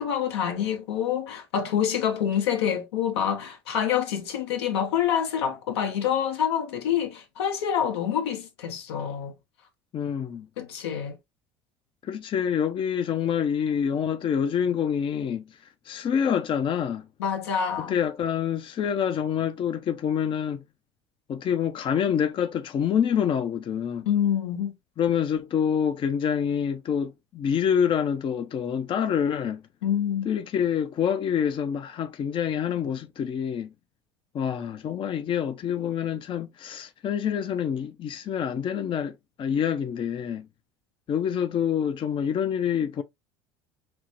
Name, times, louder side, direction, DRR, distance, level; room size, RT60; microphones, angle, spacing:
voice 1, 0.0-9.3 10.6-11.2 17.2-18.0 24.1-24.7 29.8-30.3, left 9 dB, 80° left, 1.1 m, -26 dB
voice 2, 9.9-10.5 12.0-15.6 15.9-17.1 17.8-20.6 21.3-24.1 25.0-29.6 30.3-33.7 34.3-40.5 41.1-43.0, left 8 dB, 40° left, 0.5 m, -26 dB
5.9 x 2.1 x 3.0 m
hypercardioid pair, 75°, 13 cm